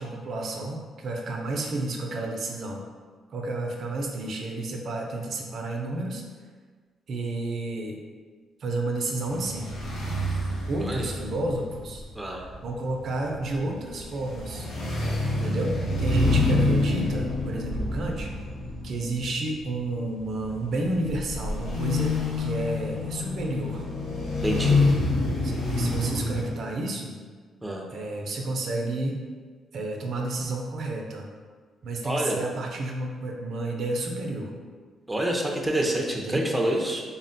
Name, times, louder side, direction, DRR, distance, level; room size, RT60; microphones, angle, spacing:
voice 1, 0.0-2.8 3.3-6.2 7.1-8.0 8.6-9.7 10.7-12.0 12.6-14.7 15.4-18.3 18.8-23.9 24.6-24.9 25.4-27.1 27.9-29.2 29.7-31.3 31.8-34.5 36.2-36.5 36.7-36.8, right 2 dB, 60° right, 1 dB, 0.5 m, -31 dB
sound 1, 9.2-26.5, left 2 dB, 70° left, 0.9 m, -27 dB
voice 2, 24.4-24.8 27.6-27.8 32.0-32.4 35.1-37.0, right 1 dB, 10° right, 0 dB, 0.6 m, -27 dB
3.6 x 2.1 x 4.0 m, 1.5 s
cardioid pair, 90°, 0 cm